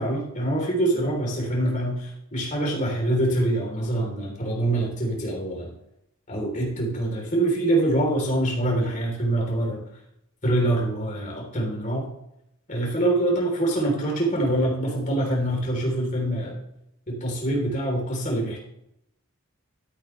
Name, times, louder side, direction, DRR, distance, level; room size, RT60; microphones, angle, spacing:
voice 1, 0.0-5.7 6.3-9.8 10.4-12.1 12.7-16.6 17.1-18.6, right 1 dB, 35° left, -1 dB, 3.4 m, -25 dB
13.0 x 8.6 x 3.2 m, 0.81 s
head